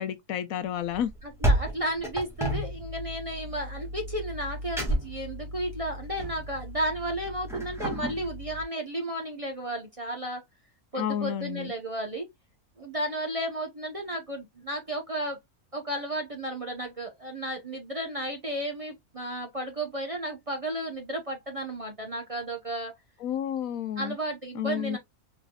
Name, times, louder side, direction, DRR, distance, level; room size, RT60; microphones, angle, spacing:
voice 1, 0.0-1.1 11.0-11.7 23.2-24.2 24.5-25.0, left 10 dB, 75° left, 1.0 m, -31 dB
sound 1, 0.9-8.6, right 1 dB, ahead, 2.0 m, -32 dB
voice 2, 1.2-10.4 10.9-12.3 12.8-15.4 15.7-22.9 24.0-25.0, right 1 dB, 30° right, 0.8 m, -33 dB
4.7 x 4.1 x 2.3 m
omnidirectional pair, 1.5 m